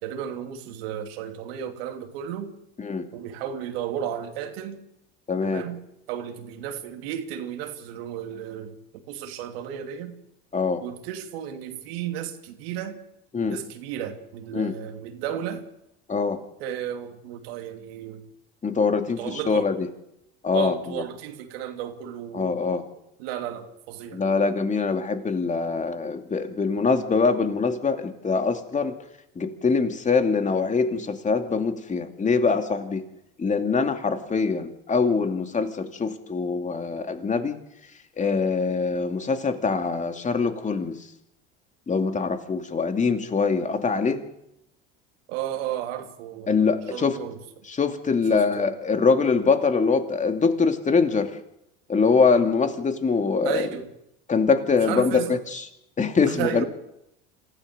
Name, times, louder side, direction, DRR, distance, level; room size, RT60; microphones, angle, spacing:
voice 1, 0.0-2.5 3.1-4.8 5.4-5.8 6.1-8.8 9.1-10.1 10.8-13.0 13.4-15.7 16.6-18.2 19.1-19.7 20.5-22.5 23.2-24.2 45.3-47.4 48.3-48.7 53.4-53.9 54.7-55.4 56.3-56.6, right 10 dB, 80° right, 3.0 m, -33 dB
voice 2, 5.3-5.6 10.5-10.8 13.3-13.6 14.5-14.8 16.1-16.4 18.6-19.9 20.4-21.0 22.3-22.8 24.1-29.0 29.4-33.0 33.4-37.6 38.2-41.1 41.9-44.2 46.5-47.2 47.7-51.4 51.9-53.7 54.3-55.6 56.0-56.6, left 4 dB, 25° left, 2.6 m, -23 dB
27.0 x 15.0 x 6.8 m
supercardioid pair, 95°, 30 cm